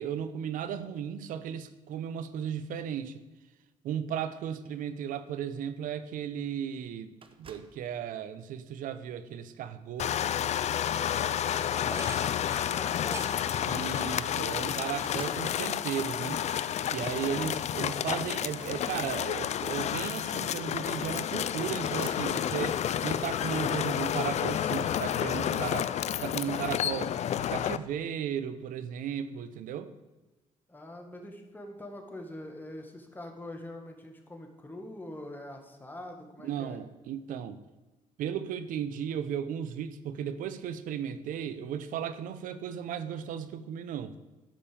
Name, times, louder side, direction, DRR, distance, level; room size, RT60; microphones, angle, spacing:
voice 1, 0.0-3.2 3.8-10.1 13.6-16.4 16.9-29.9 36.4-37.6 38.2-44.1, right 8 dB, 80° right, 12 dB, 0.8 m, -35 dB
sound 1, 7.2-7.8 8.7-9.0 10.5-10.7 11.0-11.2 12.0-12.9 13.9-14.0 14.3-15.5 18.5-19.6 20.5-20.6 20.8-21.3 21.8-22.3, right 5 dB, 40° right, 1.1 m, -52 dB
sound 2, 10.0-27.8, left 10 dB, 55° left, 0.4 m, -30 dB
voice 2, 11.3-13.3 30.7-36.8, left 1 dB, 15° left, 3 dB, 2.0 m, -44 dB
sound 3, 11.9-15.8 16.2-17.4, right 2 dB, 20° right, 1.4 m, -47 dB
12.5 x 5.4 x 7.0 m, 1.1 s
cardioid pair, 90°, 14 cm